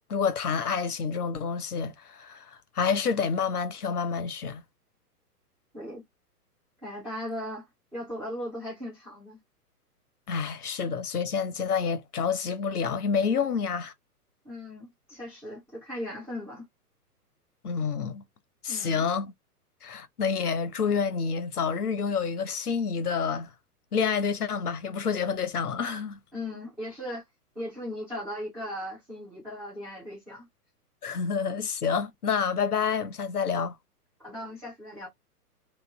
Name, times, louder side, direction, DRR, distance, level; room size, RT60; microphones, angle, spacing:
voice 1, 0.1-4.6 10.3-13.9 17.6-18.2 18.6-19.3 19.8-23.5 23.9-26.2 31.0-33.8, left 6 dB, 70° left, 0.9 m, -28 dB
voice 2, 6.8-7.7 7.9-9.4 14.4-16.6 18.7-19.0 26.3-27.2 27.5-30.5 34.2-35.1, left 1 dB, ahead, 0.4 m, -37 dB
3.0 x 2.8 x 3.7 m
figure-of-eight pair, 115°, 47 cm